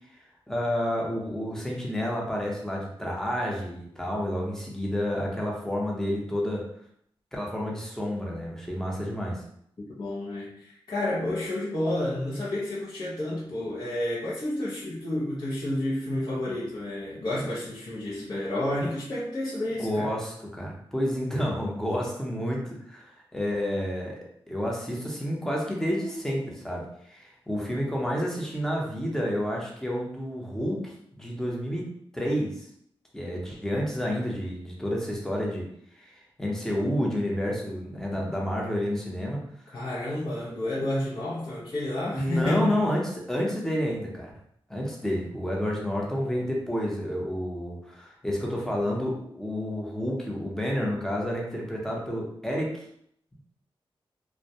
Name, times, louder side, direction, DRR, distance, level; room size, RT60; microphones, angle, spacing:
voice 1, 0.5-6.6 7.3-9.4 19.8-24.2 24.5-31.9 32.1-32.6 33.1-35.6 36.0-39.8 42.1-43.0 43.3-44.3 44.7-52.7, equal, 5° left, -3 dB, 0.7 m, -30 dB
voice 2, 10.0-20.1 39.7-42.8, left 1 dB, 45° left, -8 dB, 0.6 m, -30 dB
2.2 x 2.1 x 2.7 m, 0.70 s
cardioid pair, 55°, 10 cm